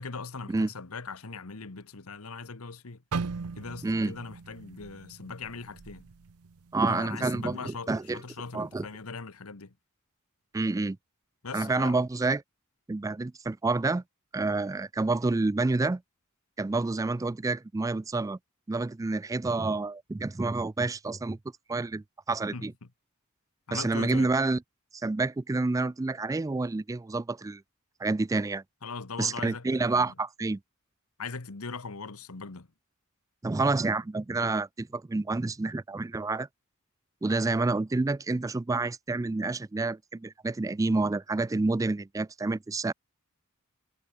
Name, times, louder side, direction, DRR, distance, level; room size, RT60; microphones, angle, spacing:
voice 1, 0.0-3.0 3.6-6.0 6.8-9.7 11.4-11.9 22.5-22.9 23.7-24.3 28.8-30.1 31.2-32.7, left 4 dB, 75° left, 1.3 m, -40 dB
sound 1, 3.1-7.1 7.5-7.8 8.4-8.7, right 4 dB, 85° right, 0.7 m, -39 dB
voice 2, 3.8-4.1 6.7-8.2 8.5-8.8 10.5-11.0 11.5-12.4 12.9-14.0 14.3-16.0 16.6-18.4 18.7-21.4 21.7-22.7 23.7-24.6 25.0-27.6 28.0-28.6 29.2-30.6 33.4-36.5 37.2-42.9, right 3 dB, 15° right, 0.3 m, -28 dB
head